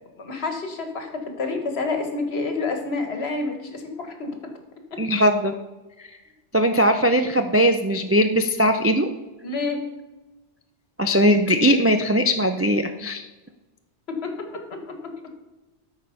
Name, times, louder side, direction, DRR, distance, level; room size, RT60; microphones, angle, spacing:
voice 1, 0.2-4.4 4.9-5.0 9.4-9.8 14.1-15.3, left 3 dB, 60° left, 5 dB, 1.6 m, -29 dB
voice 2, 5.0-5.5 6.5-9.1 11.0-13.3, equal, 20° right, 6 dB, 0.3 m, -19 dB
13.0 x 4.9 x 5.7 m, 1.1 s
omnidirectional pair, 1.2 m